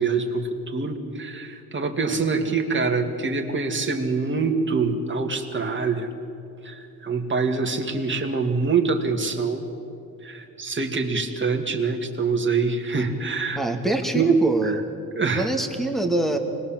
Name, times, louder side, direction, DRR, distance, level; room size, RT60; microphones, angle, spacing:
voice 1, 0.0-6.1 6.6-9.7 10.2-13.6 13.9-14.4 14.6-14.8 15.2-15.5, right 4 dB, 30° right, 3 dB, 2.4 m, -25 dB
voice 2, 13.6-14.8 15.3-16.4, right 2 dB, ahead, 4 dB, 2.2 m, -24 dB
25.0 x 20.0 x 7.5 m, 2.6 s
cardioid pair, 115°, 39 cm